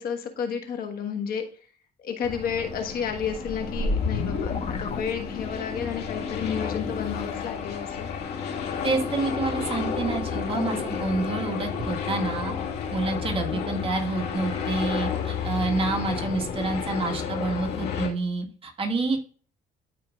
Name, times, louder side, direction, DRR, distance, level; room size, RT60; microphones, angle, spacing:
voice 1, 0.0-1.4 2.0-8.1 10.5-10.9 13.5-13.7, left 7 dB, 60° left, 5 dB, 1.4 m, -31 dB
sound 1, 2.2-18.1, left 6 dB, 75° left, 1.8 m, -31 dB
sound 2, 3.1-5.8, left 3 dB, 35° left, 1.2 m, -30 dB
voice 2, 8.8-12.5 12.9-19.2, right 3 dB, 30° right, 2 dB, 1.6 m, -28 dB
12.0 x 4.6 x 2.4 m, 0.41 s
cardioid pair, 110°, 17 cm